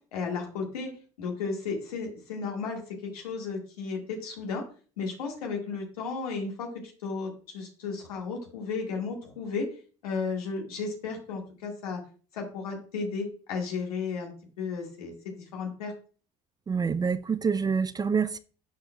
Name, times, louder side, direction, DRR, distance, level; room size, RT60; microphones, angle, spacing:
voice 1, 0.1-4.6 5.0-6.7 7.0-9.7 10.0-12.0 12.3-14.3 14.6-15.9, left 4 dB, 85° left, 1.7 m, -34 dB
voice 2, 16.7-18.4, right 5 dB, 20° right, 0.4 m, -26 dB
11.0 x 4.5 x 2.2 m
hypercardioid pair, 70°, 19 cm